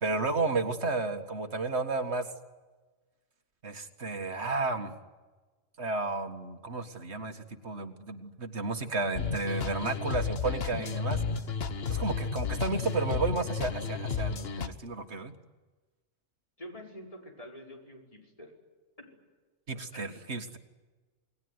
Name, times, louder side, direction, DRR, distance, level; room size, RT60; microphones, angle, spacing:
voice 1, 0.0-2.3 3.6-5.0 5.8-11.2 11.9-15.3 19.7-20.6, right 3 dB, 65° right, 7 dB, 2.1 m, -32 dB
sound 1, 9.2-14.7, left 5 dB, 55° left, 1.4 m, -32 dB
voice 2, 16.6-18.5 19.9-20.2, equal, 30° left, 0 dB, 5.5 m, -47 dB
28.5 x 20.5 x 9.7 m, 1.3 s
omnidirectional pair, 1.2 m